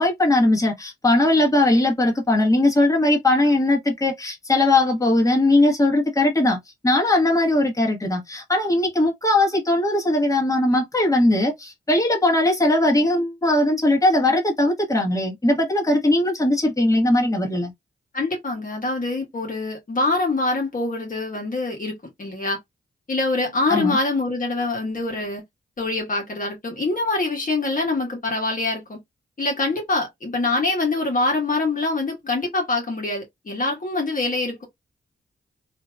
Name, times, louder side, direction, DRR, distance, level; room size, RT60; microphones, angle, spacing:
voice 1, 0.0-6.6 6.8-17.7 23.7-24.0, left 1 dB, 15° left, 1.3 m, -19 dB
voice 2, 18.1-22.6 23.1-25.4 25.8-29.0 29.4-34.6, left 2 dB, 45° left, 1.2 m, -24 dB
2.8 x 2.6 x 2.2 m
cardioid pair, 55°, 19 cm